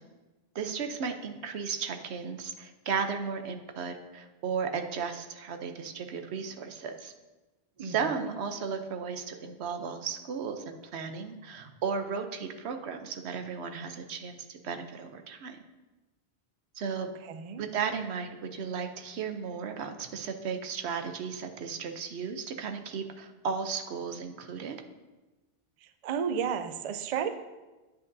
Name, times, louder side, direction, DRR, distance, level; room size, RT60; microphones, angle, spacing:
voice 1, 0.5-7.1 7.8-15.6 16.8-17.1 17.6-24.8, right 6 dB, 85° right, 6 dB, 1.0 m, -35 dB
voice 2, 7.8-8.3 17.2-17.6 25.8-27.3, right 7 dB, 50° right, 10 dB, 0.4 m, -33 dB
9.5 x 7.8 x 2.7 m, 1.2 s
omnidirectional pair, 1.1 m